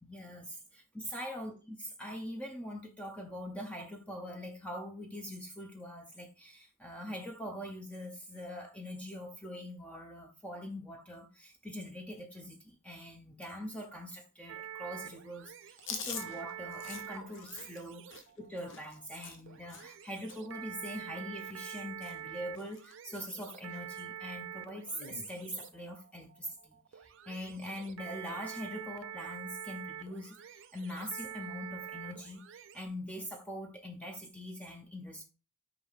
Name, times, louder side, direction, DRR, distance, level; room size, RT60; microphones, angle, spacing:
voice 1, 0.0-18.0 18.4-35.2, equal, 5° left, 0.8 m, -43 dB
sound 1, 14.5-32.9, right 9 dB, 60° right, 0.5 m, -46 dB
Chewing mastication, 15.8-20.0 20.3-20.6 20.8-21.8 22.0-22.3 22.6-23.3 23.7-23.8 24.9-25.3, left 6 dB, 60° left, 1.0 m, -46 dB
5.9 x 4.8 x 3.5 m
head